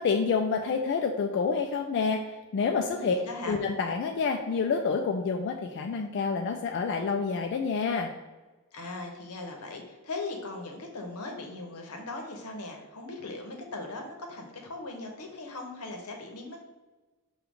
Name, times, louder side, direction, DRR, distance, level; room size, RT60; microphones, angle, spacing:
voice 1, 0.0-2.2 2.5-3.2 3.5-8.1, left 5 dB, 50° left, 3 dB, 0.3 m, -28 dB
voice 2, 2.8-3.6 8.7-16.7, left 2 dB, 85° left, 2 dB, 0.8 m, -39 dB
6.0 x 2.3 x 3.5 m, 1.2 s
head